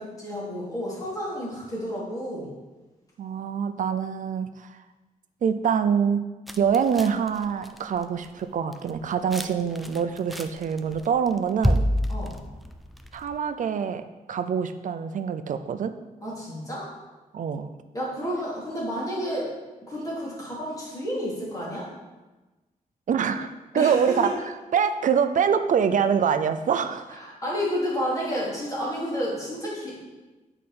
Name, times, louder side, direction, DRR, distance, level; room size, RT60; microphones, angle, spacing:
voice 1, 0.0-2.5 12.1-12.4 16.2-16.9 17.9-19.5 19.8-21.9 23.7-24.3 27.1-30.0, equal, 25° left, -6 dB, 2.7 m, -31 dB
voice 2, 3.2-4.7 5.4-6.2 6.6-11.8 13.1-14.0 14.3-15.9 17.3-17.7 23.1-24.3 24.7-27.2, right 7 dB, 65° right, 10 dB, 0.5 m, -25 dB
sound 1, 6.5-8.0 8.3-8.4 8.7-9.5 9.8-11.0 11.3-13.4, equal, ahead, 0.4 m, -27 dB
8.4 x 5.0 x 4.3 m, 1.1 s
wide cardioid pair, 130°, 14 cm